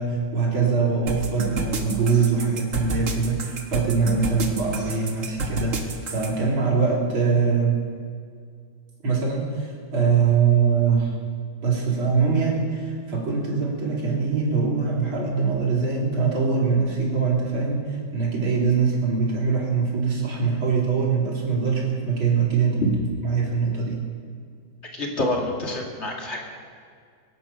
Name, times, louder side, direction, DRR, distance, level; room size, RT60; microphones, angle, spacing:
voice 1, 0.0-7.8 9.0-11.1 11.6-22.9 23.2-24.0, right 5 dB, 85° right, -3 dB, 3.6 m, -23 dB
sound 1, 1.1-6.3, right 4 dB, 45° right, 1.5 m, -30 dB
voice 2, 24.9-26.4, left 1 dB, 35° left, -1 dB, 2.4 m, -27 dB
23.5 x 8.5 x 5.7 m, 2.1 s
omnidirectional pair, 2.2 m